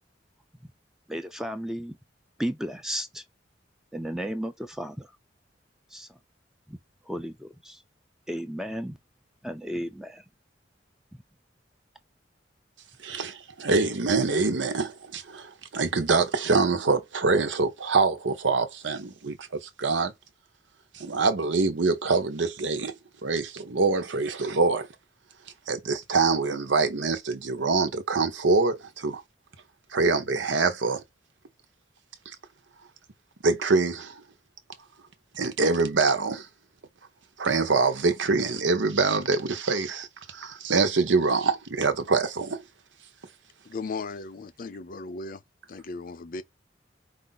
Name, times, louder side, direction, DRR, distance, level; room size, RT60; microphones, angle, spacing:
voice 1, 1.1-2.0 2.4-3.2 3.9-5.1 5.9-6.2 6.7-6.8 7.1-7.8 8.3-9.0 9.4-10.2, equal, 5° right, 0.5 m, -34 dB
voice 2, 13.0-20.1 20.9-22.9 23.2-24.9 25.7-29.2 29.9-31.0 32.3-32.4 33.4-34.2 35.3-36.5 37.4-42.6, right 4 dB, 85° right, 0.9 m, -25 dB
voice 3, 43.6-45.4 45.7-46.4, left 3 dB, 50° left, 0.6 m, -36 dB
4.9 x 2.5 x 3.9 m
head